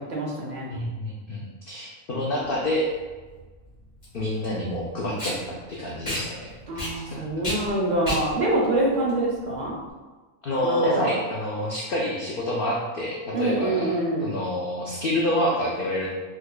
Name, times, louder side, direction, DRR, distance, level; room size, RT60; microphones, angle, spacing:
voice 1, 0.0-0.7 6.7-9.8 10.6-11.1 13.3-14.3, right 1 dB, 45° right, -3 dB, 0.6 m, -25 dB
voice 2, 0.7-2.9 4.1-7.2 10.4-16.1, left 1 dB, 70° left, -3 dB, 0.5 m, -28 dB
Packing tape duct tape, 2.4-9.9, equal, 30° left, 1.2 m, -34 dB
4.8 x 2.3 x 2.2 m, 1.3 s
omnidirectional pair, 1.5 m